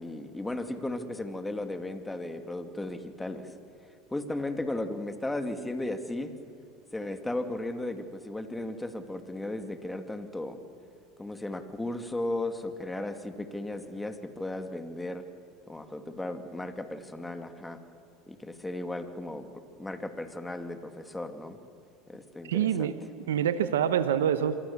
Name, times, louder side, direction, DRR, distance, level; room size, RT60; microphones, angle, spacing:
voice 1, 0.0-3.5 4.1-6.3 6.9-10.6 11.2-15.2 15.7-17.8 18.3-19.5 19.8-21.6 22.1-22.9 23.2-23.4, left 1 dB, 10° left, 7 dB, 2.4 m, -35 dB
voice 2, 22.5-23.0 23.3-24.6, right 9 dB, 90° right, 11 dB, 1.0 m, -26 dB
26.5 x 23.5 x 7.2 m, 2.6 s
hypercardioid pair, 85°, 0 cm